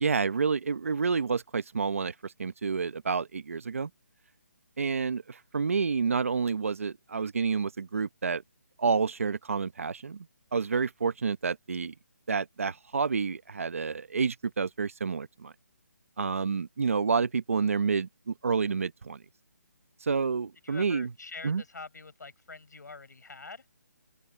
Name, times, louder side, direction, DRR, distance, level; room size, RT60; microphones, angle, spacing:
voice 1, 0.0-3.9 4.8-8.4 8.8-10.3 10.5-11.9 12.3-15.5 16.2-19.2 20.0-21.1 21.4-21.6, right 5 dB, 50° right, 0.9 m, -29 dB
voice 2, 20.6-23.7, left 4 dB, 85° left, 7.6 m, -45 dB
open air
hypercardioid pair, 175°, 9 cm